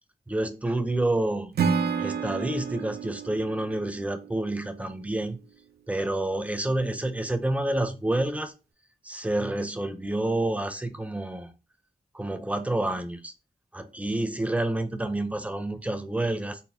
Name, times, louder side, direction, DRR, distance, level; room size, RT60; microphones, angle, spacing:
voice 1, 0.3-1.5 2.0-5.4 5.9-8.5 9.0-11.5 12.1-13.3 13.7-16.6, right 1 dB, 10° right, 0.5 m, -28 dB
Acoustic guitar / Strum, 1.5-4.7, right 6 dB, 80° right, 0.4 m, -30 dB
4.2 x 2.1 x 3.4 m
wide cardioid pair, 90°, 16 cm